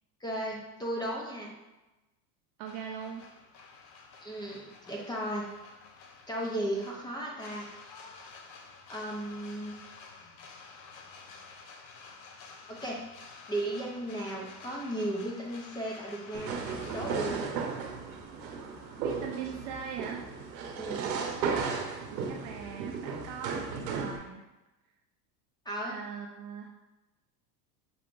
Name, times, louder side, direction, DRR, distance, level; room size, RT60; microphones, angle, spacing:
voice 1, 0.2-1.5 4.2-5.5 6.3-7.7 8.9-9.7 12.7-13.0 13.5-16.5 16.9-17.4 20.8-21.0 25.6-26.0, right 1 dB, 10° left, -2 dB, 0.6 m, -35 dB
voice 2, 2.6-3.2 19.0-20.2 22.1-24.4 25.8-26.7, right 7 dB, 40° right, 1 dB, 0.4 m, -40 dB
sound 1, 2.7-17.3, left 4 dB, 85° left, 0.9 m, -50 dB
sound 2, 16.3-24.2, right 5 dB, 90° right, 0.8 m, -35 dB
sound 3, 17.3-22.5, right 2 dB, 25° right, 1.3 m, -55 dB
5.9 x 3.5 x 2.5 m, 1.0 s
supercardioid pair, 125°, 50 cm